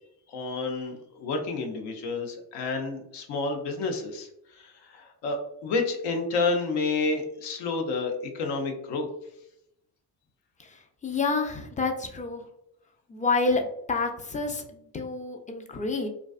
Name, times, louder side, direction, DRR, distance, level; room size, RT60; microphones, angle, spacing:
voice 1, 0.3-4.3 4.6-9.1, left 3 dB, 75° left, 4 dB, 0.6 m, -30 dB
voice 2, 11.0-12.4 13.1-16.1, left 3 dB, 20° left, 4 dB, 0.4 m, -28 dB
2.5 x 2.2 x 2.3 m, 0.78 s
supercardioid pair, 60°, 42 cm